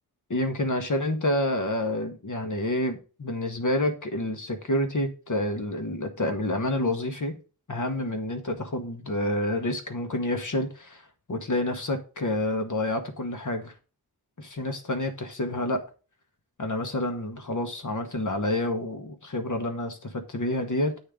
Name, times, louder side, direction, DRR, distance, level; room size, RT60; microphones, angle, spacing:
voice 1, 0.3-7.4 7.7-13.7 14.4-15.8 16.6-21.0, left 1 dB, 50° left, 1.2 m, -28 dB
8.5 x 3.5 x 5.0 m
wide cardioid pair, 80°, 38 cm